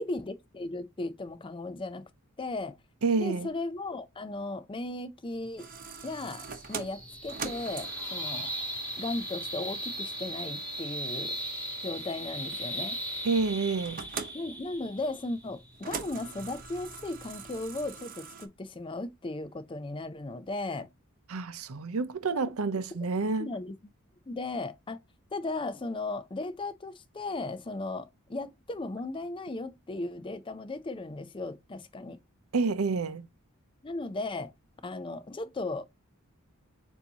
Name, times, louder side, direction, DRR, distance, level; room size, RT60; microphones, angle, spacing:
voice 1, 0.0-2.1 2.4-2.8 3.2-5.7 6.0-8.5 9.0-11.4 11.8-13.0 14.3-20.9 22.3-22.5 23.4-23.8 24.3-25.0 25.3-32.2 33.8-34.5 34.8-35.8, left 2 dB, 25° left, 0.5 m, -36 dB
voice 2, 3.0-3.5 13.2-14.0 21.3-23.5 32.5-33.3, right 4 dB, 75° right, 0.6 m, -29 dB
sound 1, 5.3-18.0, right 1 dB, 5° left, 2.4 m, -39 dB
sound 2, 5.6-18.5, right 5 dB, 40° right, 0.8 m, -44 dB
6.9 x 2.7 x 2.8 m
head